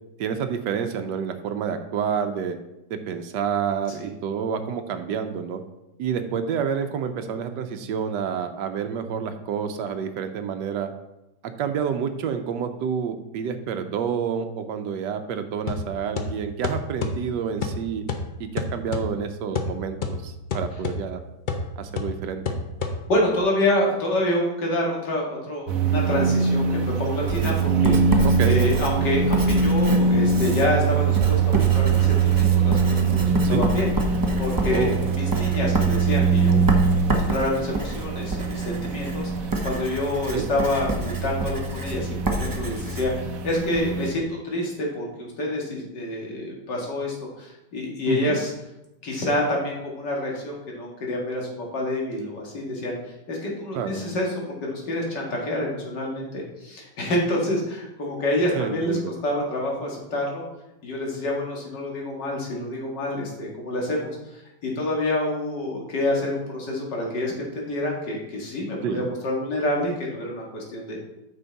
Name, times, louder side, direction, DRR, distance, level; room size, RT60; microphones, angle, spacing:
voice 1, 0.2-2.6 2.9-5.6 6.0-10.9 11.4-18.0 18.4-21.2 21.8-22.4 28.2-28.6 33.4-33.7 34.7-35.0 40.3-40.5 48.1-48.4 53.7-54.0 58.5-59.1 68.8-69.1, right 7 dB, 90° right, 7 dB, 1.3 m, -28 dB
sound 1, 15.7-23.4, left 3 dB, 60° left, 0.5 m, -31 dB
voice 2, 22.8-36.6 37.0-48.5 49.0-60.4 60.8-71.0, left 1 dB, 85° left, -2 dB, 2.5 m, -27 dB
sound 2, 25.7-44.1, right 5 dB, 60° right, 1.1 m, -23 dB
Writing, 27.3-43.9, right 2 dB, 20° right, 0.5 m, -29 dB
9.2 x 6.2 x 4.0 m, 0.94 s
omnidirectional pair, 1.8 m